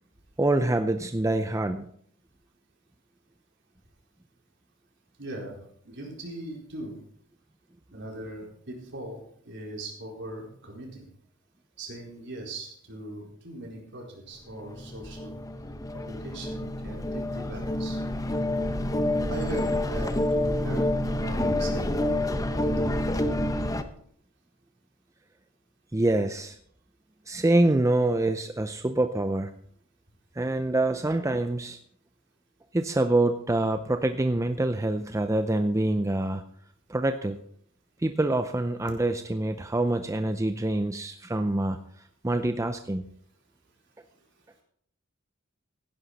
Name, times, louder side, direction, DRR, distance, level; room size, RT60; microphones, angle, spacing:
voice 1, 0.4-1.9 25.9-26.6 27.3-29.5 30.4-31.8 32.7-36.4 36.9-37.4 38.0-41.8 42.2-43.1, right 2 dB, 15° right, 8 dB, 0.5 m, -25 dB
voice 2, 5.2-5.6 5.8-7.0 7.9-11.1 11.8-15.4 15.9-18.0 19.3-22.9, right 1 dB, 60° right, -1 dB, 4.4 m, -40 dB
sound 1, 14.6-23.8, left 1 dB, 15° left, 0.8 m, -28 dB
16.0 x 10.5 x 4.1 m, 0.64 s
head